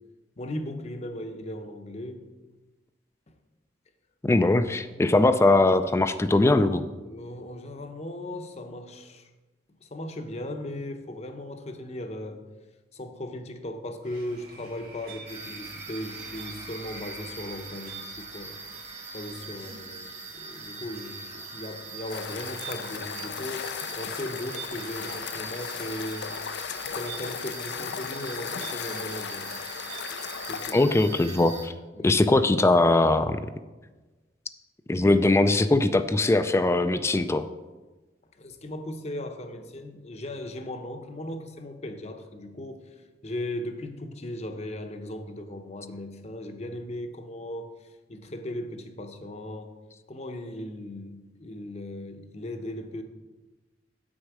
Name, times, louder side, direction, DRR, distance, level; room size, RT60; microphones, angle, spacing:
voice 1, 0.4-2.3 7.0-9.3 9.8-12.4 12.9-18.6 19.1-26.3 26.9-29.6 30.5-30.8 31.9-32.2 38.3-42.9 43.2-47.7 48.1-49.7 50.1-53.0, left 1 dB, 40° left, 6 dB, 0.8 m, -37 dB
voice 2, 4.2-6.8 30.7-31.7 32.0-33.4 34.9-37.5, left 2 dB, 15° left, 10 dB, 0.3 m, -21 dB
sound 1, 14.0-30.6, right 4 dB, 60° right, 1.9 m, -47 dB
sound 2, 15.3-31.7, right 3 dB, 40° right, 1.0 m, -42 dB
sound 3, 22.1-30.7, left 7 dB, 75° left, 0.4 m, -36 dB
8.3 x 6.3 x 4.8 m, 1.2 s
head